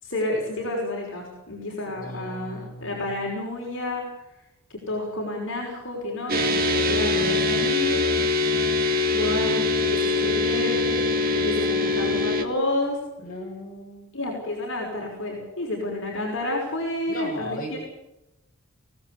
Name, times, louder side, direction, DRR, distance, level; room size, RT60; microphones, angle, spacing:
voice 1, 0.0-4.1 4.7-8.0 9.1-11.1 11.3-13.0 14.1-17.8, left 2 dB, 60° left, -2 dB, 5.8 m, -30 dB
voice 2, 1.9-3.3 13.2-14.1 17.1-17.8, left 1 dB, 40° left, -1 dB, 7.8 m, -37 dB
sound 1, 6.3-12.4, left 2 dB, 40° right, 1.9 m, -23 dB
23.5 x 17.0 x 8.5 m, 0.91 s
head